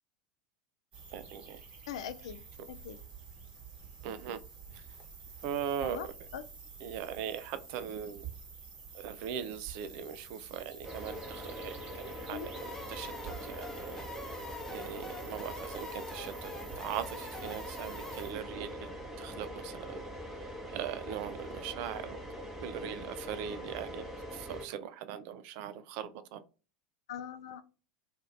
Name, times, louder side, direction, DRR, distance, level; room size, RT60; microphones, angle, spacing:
sound 1, 0.9-18.3, right 5 dB, 35° right, 1.1 m, -50 dB
voice 1, 1.1-1.6 2.6-2.7 4.0-4.4 4.7-4.8 5.4-6.1 6.8-8.3 8.9-12.5 12.9-14.1 14.7-20.0 20.7-22.2 22.6-26.4, right 9 dB, 55° right, 0.3 m, -40 dB
voice 2, 1.9-2.4 2.7-3.0 5.8-6.1 6.3-6.4 12.3-12.5 27.1-27.6, left 8 dB, 65° left, 0.3 m, -41 dB
sound 2, 10.8-24.7, equal, 10° right, 0.9 m, -43 dB
sound 3, 12.6-19.5, left 3 dB, 15° left, 0.5 m, -47 dB
2.6 x 2.4 x 3.1 m
figure-of-eight pair, 80°, 3 cm